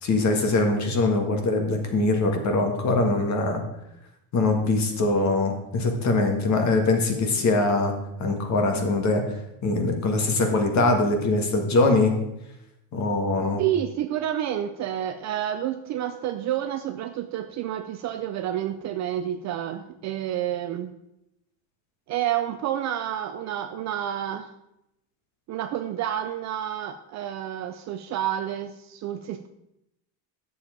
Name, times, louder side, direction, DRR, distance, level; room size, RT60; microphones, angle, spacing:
voice 1, 0.0-3.6 4.3-7.9 8.2-9.2 9.6-12.2 12.9-13.6, left 2 dB, 35° left, 4 dB, 1.7 m, -22 dB
voice 2, 13.6-20.9 22.1-24.5 25.5-29.5, right 11 dB, 40° right, 8 dB, 0.4 m, -29 dB
10.0 x 7.1 x 5.1 m, 0.84 s
cardioid pair, 155°, 48 cm